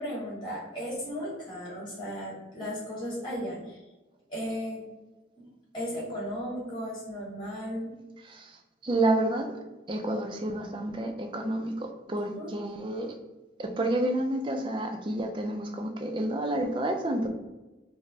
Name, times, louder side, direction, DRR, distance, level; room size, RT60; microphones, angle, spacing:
voice 1, 0.0-3.8 4.3-4.8 5.4-5.5 5.7-7.9 12.3-12.5, equal, 25° left, -6 dB, 1.5 m, -35 dB
voice 2, 8.2-8.6 8.8-9.5 9.9-13.1 13.6-17.3, right 1 dB, 25° right, 4 dB, 0.4 m, -29 dB
5.0 x 2.1 x 2.7 m, 1.1 s
head